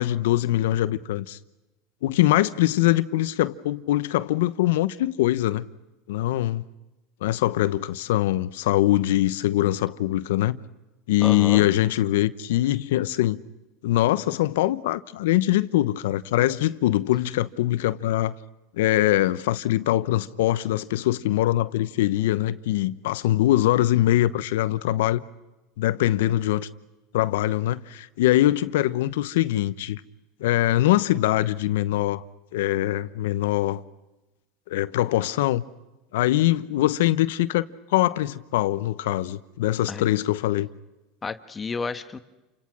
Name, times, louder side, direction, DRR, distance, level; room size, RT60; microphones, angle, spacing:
voice 1, 0.0-1.4 2.0-5.7 6.1-6.6 7.2-10.6 11.1-13.4 13.8-18.3 18.7-25.2 25.8-26.7 27.1-30.0 30.4-32.2 32.5-33.8 34.7-35.6 36.1-40.7, left 15 dB, 80° left, 1.0 m, -23 dB
voice 2, 11.2-11.7 39.9-40.0 41.2-42.2, left 5 dB, 20° left, 1.5 m, -31 dB
29.5 x 26.0 x 6.3 m
supercardioid pair, 105°, 0 cm